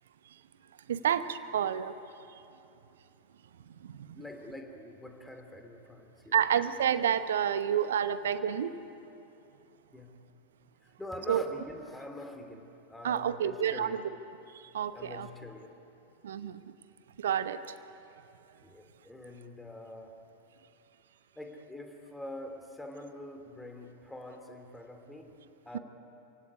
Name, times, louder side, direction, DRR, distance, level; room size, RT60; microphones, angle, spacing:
voice 1, 0.9-1.9 3.8-4.2 6.3-8.8 11.3-11.4 13.0-14.0 14.5-15.3 16.2-16.6 17.2-17.6, right 9 dB, 60° right, 13 dB, 0.9 m, -29 dB
voice 2, 4.1-6.3 9.9-10.2 10.8-14.0 14.9-15.7 18.6-20.2 21.4-25.3 25.6-25.8, left 1 dB, 5° left, 3 dB, 2.9 m, -45 dB
28.5 x 17.0 x 9.8 m, 2.8 s
figure-of-eight pair, 90°, 0 cm